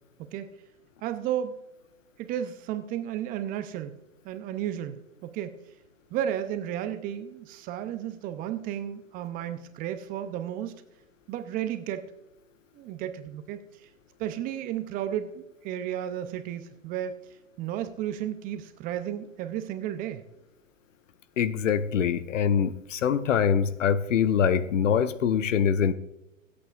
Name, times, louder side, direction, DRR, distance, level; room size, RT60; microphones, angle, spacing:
voice 1, 1.0-1.5 2.2-3.9 4.2-5.5 6.1-10.8 11.3-12.1 12.8-13.6 14.2-17.2 17.6-20.2, right 10 dB, 20° right, 9 dB, 0.6 m, -33 dB
voice 2, 21.4-25.9, left 7 dB, 65° left, 14 dB, 0.9 m, -24 dB
25.0 x 8.5 x 2.4 m, 0.90 s
hypercardioid pair, 115°, 40 cm